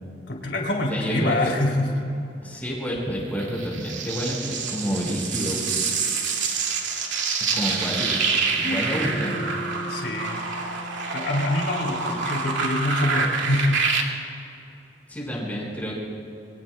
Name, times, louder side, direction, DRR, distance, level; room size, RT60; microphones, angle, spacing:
voice 1, 0.3-2.2 8.6-8.9 9.9-10.4 11.1-13.8, left 1 dB, 70° left, -1 dB, 3.0 m, -25 dB
voice 2, 0.9-1.5 2.4-5.7 7.5-8.3 8.6-9.4 10.0-10.1 11.8-12.2 15.1-15.9, equal, 10° left, -4 dB, 4.7 m, -29 dB
sound 1, 3.4-14.0, right 5 dB, 85° right, 2.2 m, -27 dB
Bass guitar, 8.9-13.0, equal, 45° left, 2.1 m, -39 dB
28.0 x 23.0 x 2.2 m, 2.8 s
head